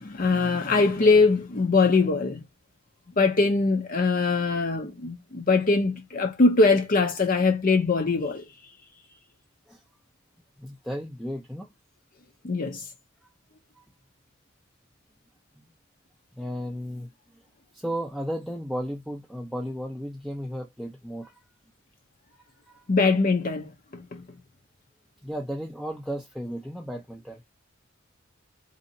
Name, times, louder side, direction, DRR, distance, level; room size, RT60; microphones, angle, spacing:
voice 1, 0.0-2.4 3.2-8.4 12.4-12.8 22.9-24.2, left 3 dB, 40° left, 0.6 m, -22 dB
voice 2, 10.6-11.7 16.4-17.1 17.7-21.3 25.2-27.4, equal, ahead, 0.5 m, -34 dB
4.0 x 2.7 x 2.7 m
head